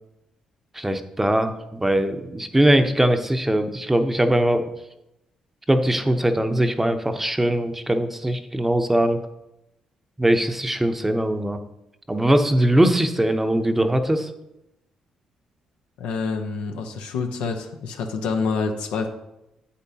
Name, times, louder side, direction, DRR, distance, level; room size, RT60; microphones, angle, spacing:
voice 1, 0.7-4.6 5.7-9.2 10.2-11.6 12.1-14.3, right 1 dB, 10° right, 7 dB, 0.8 m, -21 dB
voice 2, 16.0-19.1, left 4 dB, 85° left, 4 dB, 0.9 m, -27 dB
8.3 x 8.3 x 2.8 m, 0.89 s
supercardioid pair, 60°, 2 cm